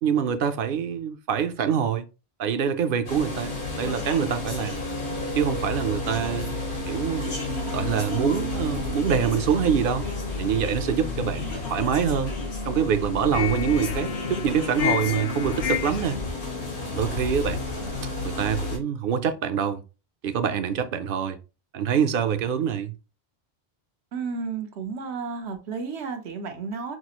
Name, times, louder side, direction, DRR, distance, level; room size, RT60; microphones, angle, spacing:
voice 1, 0.0-2.1 2.4-4.8 5.3-7.3 7.7-10.1 10.4-12.3 12.7-16.2 16.8-17.6 18.2-19.8 20.2-21.4 21.7-22.9, right 7 dB, 60° right, 0.7 m, -25 dB
sound 1, 3.1-18.8, left 2 dB, 85° left, 1.7 m, -31 dB
sound 2, 7.2-11.2 11.6-12.5 13.3-16.2, left 9 dB, 55° left, 0.5 m, -33 dB
voice 2, 24.1-27.0, right 5 dB, 85° right, 1.1 m, -32 dB
5.9 x 2.4 x 2.9 m
omnidirectional pair, 1.1 m